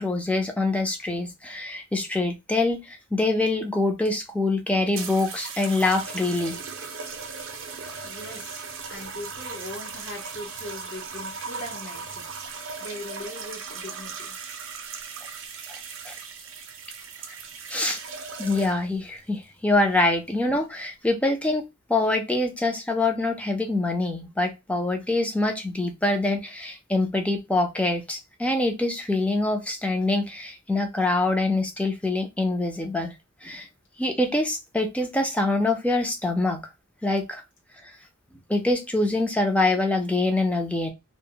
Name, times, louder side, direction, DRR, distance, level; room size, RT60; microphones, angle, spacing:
voice 1, 0.0-6.6 16.1-16.2 17.7-18.0 18.4-21.6 21.9-33.1 33.4-33.7 34.0-36.6 37.0-37.4 37.8-37.9 38.5-40.9, left 2 dB, 5° left, 4 dB, 0.4 m, -25 dB
sound 1, 4.9-19.0 19.8-20.2, right 5 dB, 65° right, 0.5 m, -38 dB
voice 2, 8.0-14.4, left 1 dB, 55° left, -3 dB, 0.8 m, -40 dB
2.0 x 2.0 x 3.6 m, 0.23 s
head